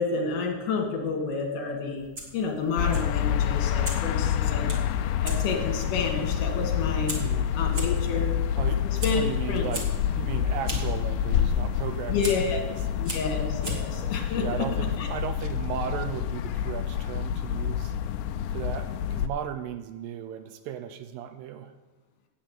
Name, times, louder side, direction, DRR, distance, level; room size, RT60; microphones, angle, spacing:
voice 1, 0.0-2.1 2.3-4.7 5.2-7.2 7.6-8.4 8.8-9.2 9.5-9.7 12.1-12.6 13.0-14.7 15.0-15.1, left 4 dB, 60° left, 0 dB, 3.1 m, -29 dB
Fire, 2.0-15.4, right 1 dB, 55° right, 0.9 m, -41 dB
sound 1, 2.8-19.3, left 9 dB, 90° left, 2.1 m, -28 dB
voice 2, 7.1-7.5 8.6-8.8 9.1-9.9 10.1-12.4 14.4-18.0 18.5-21.7, right 9 dB, 80° right, 7 dB, 2.0 m, -35 dB
9.0 x 8.7 x 7.6 m, 1.2 s
omnidirectional pair, 4.8 m